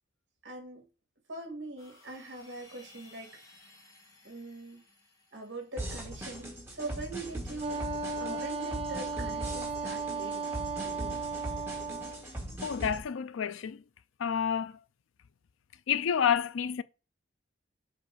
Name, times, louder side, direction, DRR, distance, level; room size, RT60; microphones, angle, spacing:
voice 1, 0.4-0.8 1.3-3.6 4.2-4.8 5.3-7.9 8.2-11.2, right 2 dB, 60° right, 2.6 m, -42 dB
sound 1, 1.8-6.2, left 2 dB, 15° left, 1.5 m, -58 dB
sound 2, 5.8-13.0, right 1 dB, 10° right, 1.6 m, -40 dB
Wind instrument woodwind instrument, 7.6-12.3, right 4 dB, 30° right, 0.4 m, -35 dB
voice 2, 12.6-13.8 14.2-14.7 15.9-16.8, left 8 dB, 80° left, 0.4 m, -29 dB
7.5 x 2.6 x 4.9 m
head